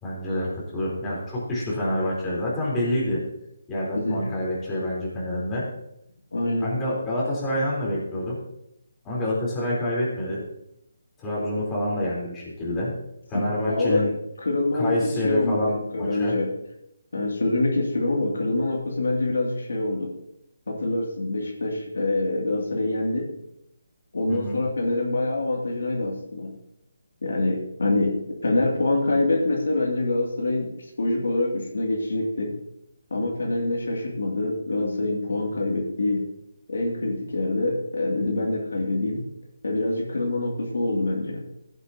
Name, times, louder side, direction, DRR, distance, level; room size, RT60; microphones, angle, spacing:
voice 1, 0.0-3.2 3.7-5.7 6.6-8.4 9.0-10.4 11.2-12.9 13.3-14.1 14.7-16.4 24.3-24.6, left 1 dB, 15° left, -6 dB, 3.7 m, -27 dB
voice 2, 3.9-4.3 6.3-6.7 13.3-14.0 14.4-14.9 15.2-16.5 17.1-20.1 20.7-23.3 24.1-26.5 27.2-28.1 28.4-30.7 31.0-32.6 33.1-36.2 36.7-39.3 39.6-41.4, left 2 dB, 75° left, 0 dB, 2.4 m, -25 dB
16.5 x 8.0 x 2.8 m, 0.79 s
hypercardioid pair, 160°, 0 cm